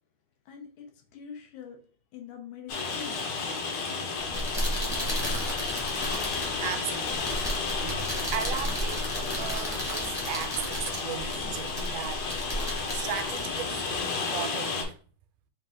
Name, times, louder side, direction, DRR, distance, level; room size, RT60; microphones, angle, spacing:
voice 1, 0.5-1.8 2.1-3.3, left 7 dB, 90° left, 2.4 m, -44 dB
Rain, 2.7-14.8, left 4 dB, 70° left, 2.1 m, -32 dB
sound 1, 4.2-14.0, equal, 20° left, 0.6 m, -34 dB
voice 2, 4.8-5.4 6.6-7.2 7.8-12.2 12.9-14.9, right 9 dB, 85° right, 2.0 m, -37 dB
5.4 x 2.5 x 3.6 m
omnidirectional pair, 3.4 m